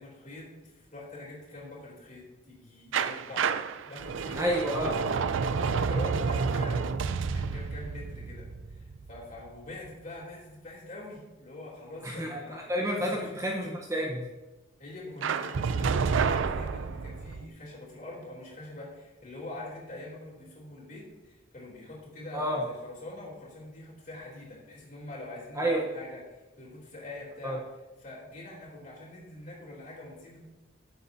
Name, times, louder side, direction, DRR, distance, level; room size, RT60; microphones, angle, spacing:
voice 1, 0.0-3.5 3.8-4.4 4.8-5.1 5.5-12.6 13.0-13.4 14.8-27.6 28.0-30.4, left 2 dB, 40° left, -4 dB, 3.3 m, -44 dB
sound 1, 2.9-9.7 15.2-17.4, right 5 dB, 75° right, 0.4 m, -30 dB
voice 2, 4.4-5.0 12.0-14.3 22.3-22.6 25.6-25.9 27.4-27.6, equal, 15° right, -1 dB, 0.9 m, -30 dB
15.5 x 7.7 x 2.7 m, 1.1 s
head